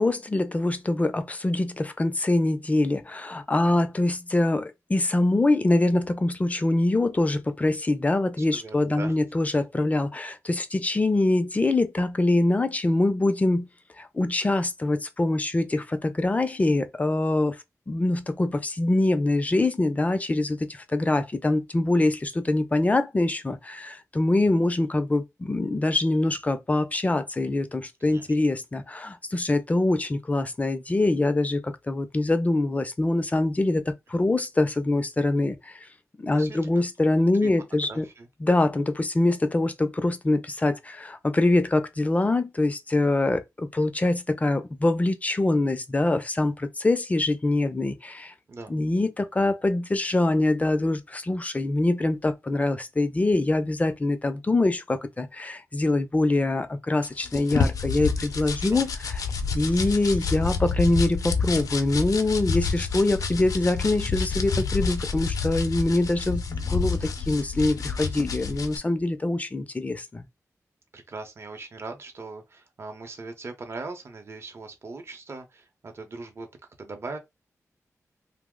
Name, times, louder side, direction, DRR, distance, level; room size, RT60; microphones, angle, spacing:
voice 1, 0.0-13.7 14.0-17.6 17.9-35.9 36.2-38.1 38.4-48.3 48.7-59.2 59.5-70.2, left 2 dB, 25° left, 0.4 m, -24 dB
voice 2, 8.4-9.1 28.0-28.2 36.3-36.9 37.4-37.5 37.9-38.3 48.5-48.8 58.5-58.8 70.9-76.5 76.8-77.2, right 3 dB, 50° right, 0.7 m, -40 dB
sound 1, 57.0-68.8, left 5 dB, 85° left, 0.5 m, -29 dB
2.8 x 2.0 x 3.6 m
wide cardioid pair, 100°, 6 cm